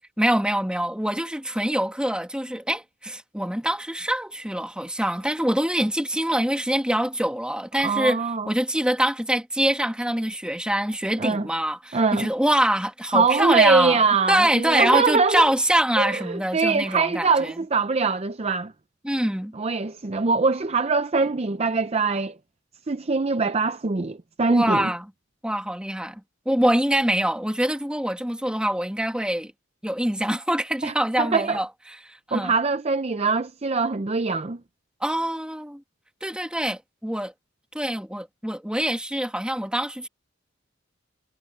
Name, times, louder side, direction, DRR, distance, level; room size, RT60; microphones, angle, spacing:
voice 1, 0.2-14.0 14.3-17.5 19.0-19.5 24.5-25.1 25.4-29.5 29.8-31.7 32.0-32.5 35.0-35.8 36.2-37.3 37.7-40.1, right 1 dB, 5° right, 2.1 m, -24 dB
voice 2, 7.8-8.5 11.2-11.5 11.9-12.3 13.1-15.5 16.0-18.7 19.6-22.3 22.9-24.9 30.8-31.6 32.3-34.6, right 4 dB, 30° right, 0.6 m, -23 dB
head